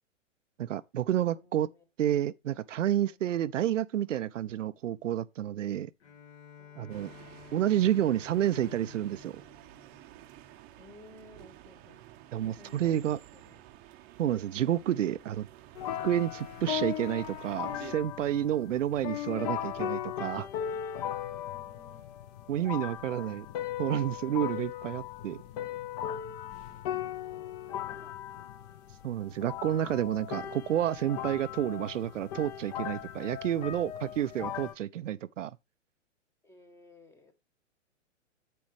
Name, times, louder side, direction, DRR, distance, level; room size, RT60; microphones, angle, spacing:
voice 1, 0.6-1.7 2.0-5.9 6.8-7.1 7.5-9.4 12.3-13.2 14.2-15.5 16.0-20.5 22.5-23.5 23.8-25.4 29.0-35.5, right 11 dB, 75° right, 0.5 m, -30 dB
voice 2, 1.3-1.8 2.8-3.2 6.6-7.2 10.7-12.0 12.4-13.6 21.5-22.1 22.5-23.4 26.5-28.2 36.4-37.3, left 2 dB, 5° left, 1.0 m, -57 dB
Bowed string instrument, 6.0-10.7, left 9 dB, 60° left, 2.8 m, -53 dB
sound 1, 6.9-17.9, right 14 dB, 25° right, 0.7 m, -52 dB
sound 2, 15.7-34.7, left 10 dB, 35° left, 0.8 m, -38 dB
8.6 x 7.5 x 3.1 m
hypercardioid pair, 120°, 38 cm